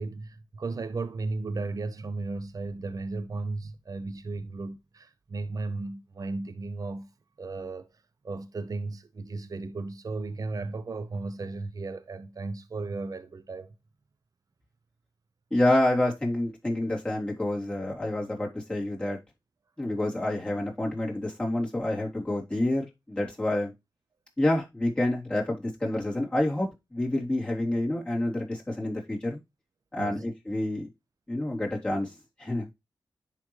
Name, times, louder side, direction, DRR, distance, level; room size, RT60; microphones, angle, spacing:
voice 1, 0.0-7.1 7.4-7.9 8.2-13.7 30.0-30.3, right 3 dB, 45° right, 0.7 m, -35 dB
voice 2, 15.5-19.2 19.8-23.7 24.4-29.4 29.9-30.9 31.3-32.1 32.4-32.7, left 1 dB, 10° left, 3.6 m, -28 dB
10.5 x 3.8 x 3.2 m
cardioid pair, 65°, 8 cm